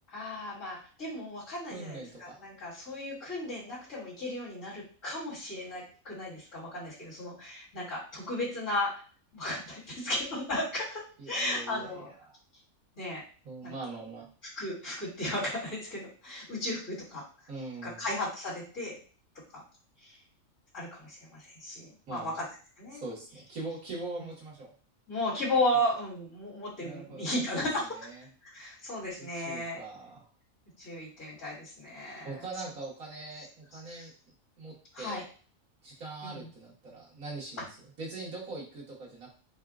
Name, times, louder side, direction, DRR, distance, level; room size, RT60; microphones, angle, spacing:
voice 1, 0.1-8.9 9.3-11.0 11.3-12.1 13.0-13.2 13.6-13.7 14.5-17.2 17.8-19.0 19.5-19.6 20.0-20.2 20.7-22.4 22.8-23.0 25.1-27.9 28.4-29.8 30.8-32.3 33.7-34.1 34.9-35.2 36.2-36.4, left 1 dB, 65° left, -11 dB, 2.6 m, -35 dB
voice 2, 1.7-2.4 11.2-12.4 13.4-14.3 17.5-18.1 22.1-22.4 22.9-24.7 25.7-25.8 26.8-28.2 29.2-30.3 32.2-34.1 34.6-35.2 35.8-37.7 38.0-39.3, right 3 dB, 90° right, -5 dB, 2.0 m, -42 dB
5.5 x 2.3 x 2.4 m, 0.40 s
omnidirectional pair, 1.4 m